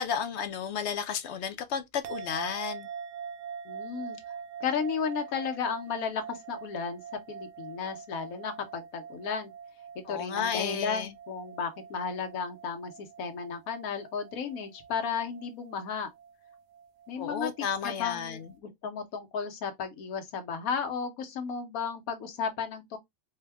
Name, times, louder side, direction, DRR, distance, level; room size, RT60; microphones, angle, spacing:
voice 1, 0.0-2.9 10.0-11.1 17.2-18.5, left 7 dB, 65° left, 0.8 m, -33 dB
sound 1, 2.0-18.5, right 7 dB, 70° right, 1.0 m, -44 dB
voice 2, 3.6-4.2 4.6-7.0 7.3-9.5 10.1-16.1 17.1-17.5 17.8-23.0, left 6 dB, 85° left, 1.3 m, -34 dB
4.4 x 2.2 x 3.3 m
omnidirectional pair, 1.5 m